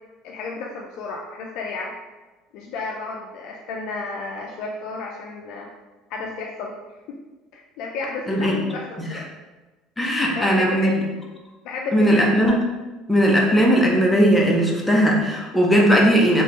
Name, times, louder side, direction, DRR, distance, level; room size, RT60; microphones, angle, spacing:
voice 1, 0.2-1.9 2.5-5.7 6.1-6.7 7.1-7.2 7.5-9.3 10.3-11.0 11.6-12.4, left 3 dB, 70° left, -1 dB, 0.4 m, -32 dB
voice 2, 10.0-10.9 11.9-12.6 13.1-16.4, equal, 10° left, -2 dB, 0.8 m, -18 dB
3.2 x 2.9 x 3.1 m, 1.2 s
supercardioid pair, 105°, 0 cm